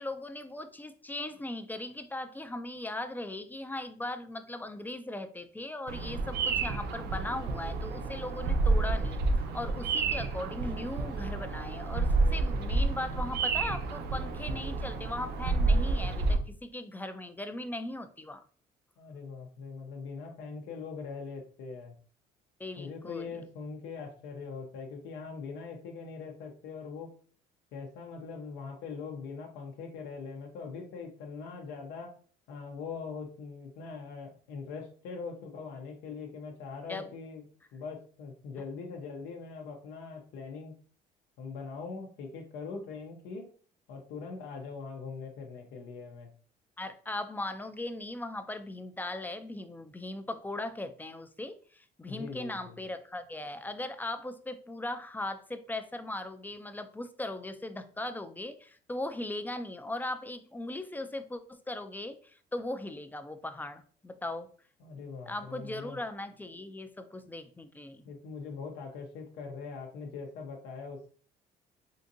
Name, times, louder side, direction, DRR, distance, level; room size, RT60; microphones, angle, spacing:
voice 1, 0.0-18.4 22.6-23.4 36.9-37.1 46.8-64.5 65.3-68.0, left 1 dB, 10° left, 9 dB, 0.3 m, -38 dB
Bird vocalization bird call bird song, 5.9-16.4, right 3 dB, 75° right, 0.6 m, -29 dB
voice 2, 19.0-21.9 22.8-27.1 27.7-32.1 32.5-37.4 37.7-40.8 41.4-43.5 43.9-46.3 52.1-52.8 64.8-66.0 68.0-71.1, left 5 dB, 85° left, 1 dB, 0.6 m, -42 dB
3.7 x 2.5 x 2.6 m, 0.43 s
cardioid pair, 110°, 17 cm